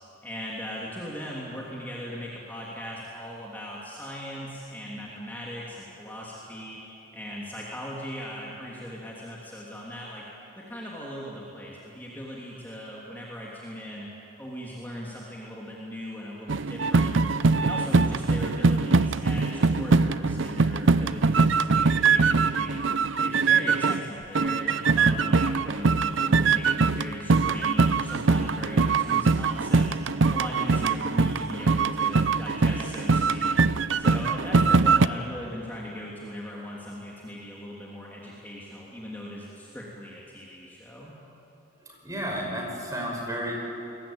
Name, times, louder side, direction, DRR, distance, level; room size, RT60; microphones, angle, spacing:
voice 1, 0.2-6.8 7.1-10.2 10.5-14.1 14.4-17.2 17.6-22.7 23.2-29.9 30.3-33.5 34.0-41.2, equal, 10° left, -5 dB, 3.1 m, -38 dB
sound 1, 16.5-24.1 24.3-35.1, right 4 dB, 65° right, 0.6 m, -22 dB
voice 2, 41.9-43.5, equal, 15° right, 0 dB, 5.4 m, -32 dB
29.0 x 22.0 x 8.9 m, 3.0 s
head